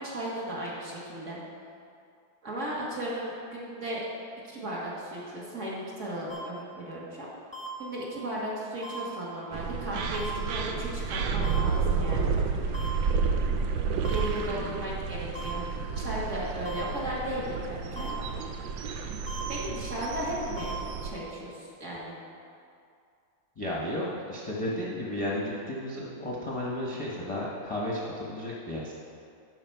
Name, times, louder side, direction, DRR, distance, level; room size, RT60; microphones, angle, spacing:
voice 1, 0.0-1.4 2.4-4.1 4.4-7.3 7.8-12.3 14.1-15.7 16.0-18.3 19.5-20.7 21.0-22.2, right 1 dB, 40° right, -6 dB, 1.9 m, -35 dB
sound 1, 6.3-6.4 7.5-7.7 8.8-9.0 10.1-10.3 11.4-11.6 12.7-12.9 14.0-14.2 15.4-15.5 16.7-16.8 18.0-18.1 19.3-19.4 20.6-20.7, left 1 dB, 10° right, 0.9 m, -39 dB
sound 2, 9.5-21.1, right 5 dB, 75° right, 1.3 m, -31 dB
voice 2, 14.4-14.8 23.6-28.9, left 1 dB, 25° left, -6 dB, 0.8 m, -33 dB
12.0 x 4.9 x 4.6 m, 2.4 s
omnidirectional pair, 2.1 m